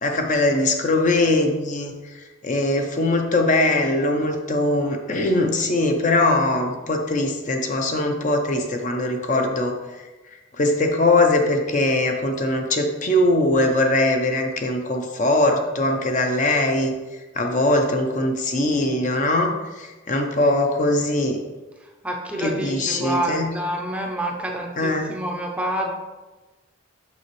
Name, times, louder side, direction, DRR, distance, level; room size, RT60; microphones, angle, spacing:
voice 1, 0.0-21.4 22.4-23.5 24.8-25.2, left 2 dB, 40° left, 3 dB, 0.6 m, -21 dB
voice 2, 22.0-25.9, right 1 dB, 5° right, 0 dB, 0.6 m, -27 dB
6.9 x 6.0 x 3.2 m, 1.2 s
head